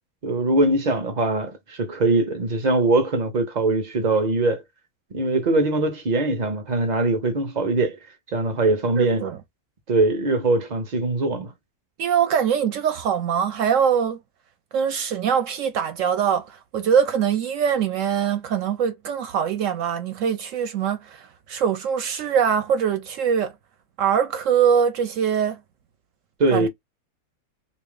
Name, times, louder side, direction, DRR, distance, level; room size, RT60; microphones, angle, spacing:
voice 1, 0.2-4.6 5.1-8.0 8.3-9.3 9.9-11.5 26.4-26.7, right 2 dB, 45° right, 0.6 m, -22 dB
voice 2, 9.0-9.4 12.0-14.2 14.7-23.5 24.0-25.6 26.5-26.7, right 8 dB, 70° right, 0.9 m, -23 dB
3.1 x 2.5 x 3.6 m
omnidirectional pair, 1.5 m